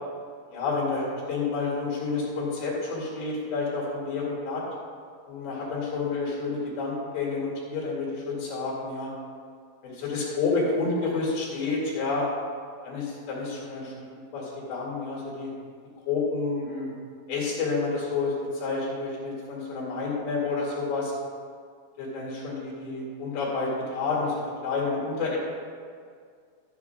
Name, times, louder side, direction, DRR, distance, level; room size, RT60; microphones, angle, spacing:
voice 1, 0.5-4.6 5.3-9.1 9.8-12.3 12.8-15.5 16.1-16.9 17.3-21.1 22.0-25.4, left 3 dB, 85° left, -5 dB, 4.5 m, -29 dB
12.5 x 9.8 x 2.4 m, 2.1 s
omnidirectional pair, 4.7 m